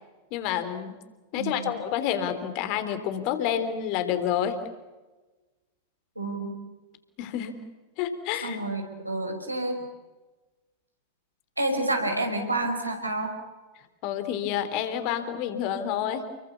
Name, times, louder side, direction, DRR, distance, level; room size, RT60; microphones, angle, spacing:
voice 1, 0.3-0.9 1.3-4.6 7.2-7.6 8.0-8.6 14.0-16.3, left 9 dB, 45° left, 10 dB, 3.5 m, -29 dB
voice 2, 1.3-1.7 6.2-6.6 8.4-9.8 11.6-13.3, right 2 dB, 85° right, 3 dB, 5.4 m, -29 dB
30.0 x 23.0 x 7.1 m, 1.2 s
figure-of-eight pair, 90°, 0 cm